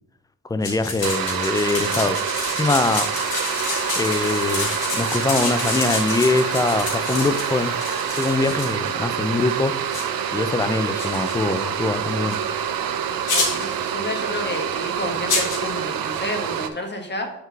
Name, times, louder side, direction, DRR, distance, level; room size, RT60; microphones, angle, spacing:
voice 1, 0.5-2.2 2.6-3.1 4.0-7.7 8.2-9.8 10.3-12.4, left 3 dB, 10° left, 11 dB, 0.5 m, -23 dB
sound 1, 0.6-8.9 9.4-9.5 9.9-10.0 11.0-11.6 12.3-12.4 13.3-13.8 15.3-15.7, left 3 dB, 80° left, 2.3 m, -28 dB
sound 2, 1.0-16.7, right 8 dB, 70° right, 0.7 m, -26 dB
sound 3, 3.1-9.3, left 2 dB, 45° left, 2.0 m, -36 dB
voice 2, 13.3-17.3, left 1 dB, 30° left, 4 dB, 1.4 m, -30 dB
5.7 x 3.7 x 5.7 m, 0.86 s
cardioid pair, 65°, 36 cm